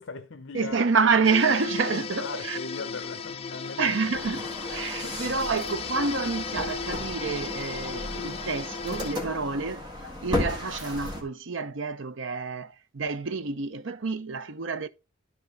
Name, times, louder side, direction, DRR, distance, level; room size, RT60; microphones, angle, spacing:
voice 1, 0.0-0.9 1.9-4.0 5.0-5.2, left 4 dB, 65° left, 0.8 m, -39 dB
voice 2, 0.5-2.6 3.8-14.9, right 4 dB, 65° right, 0.7 m, -28 dB
sound 1, 1.2-9.1, left 5 dB, 30° left, 0.5 m, -36 dB
sound 2, 4.1-11.2, left 1 dB, 20° right, 2.0 m, -35 dB
12.0 x 4.5 x 3.9 m
head